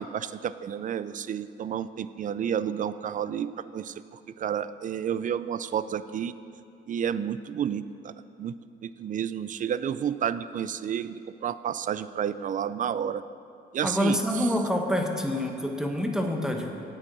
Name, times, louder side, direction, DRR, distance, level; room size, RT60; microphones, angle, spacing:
voice 1, 0.0-3.9 4.4-6.3 6.9-8.5 8.8-13.2 13.7-14.2, right 8 dB, 40° right, 14 dB, 0.4 m, -31 dB
voice 2, 13.8-16.7, left 1 dB, 5° right, 3 dB, 1.1 m, -27 dB
8.2 x 7.7 x 6.2 m, 2.6 s
cardioid pair, 90°, 20 cm